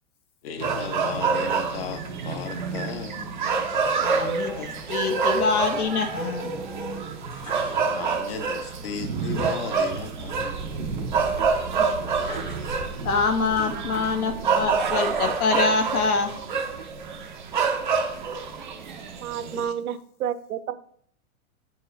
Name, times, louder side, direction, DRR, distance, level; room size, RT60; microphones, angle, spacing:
voice 1, 0.4-3.3 7.9-10.7, left 6 dB, 40° left, 8 dB, 0.8 m, -35 dB
sound 1, 0.6-19.7, right 5 dB, 35° right, 0.4 m, -27 dB
voice 2, 4.0-6.5 11.8-11.9 12.3-12.4 13.0-16.3 19.5-19.7, left 4 dB, 75° left, 5 dB, 1.5 m, -25 dB
sound 2, 5.4-8.4 8.7-8.8 10.6-13.3 13.9-14.7, right 1 dB, 10° left, 0.6 m, -43 dB
voice 3, 19.1-20.7, right 9 dB, 75° right, 13 dB, 0.7 m, -30 dB
9.0 x 4.5 x 3.2 m, 0.62 s
hypercardioid pair, 170°, 44 cm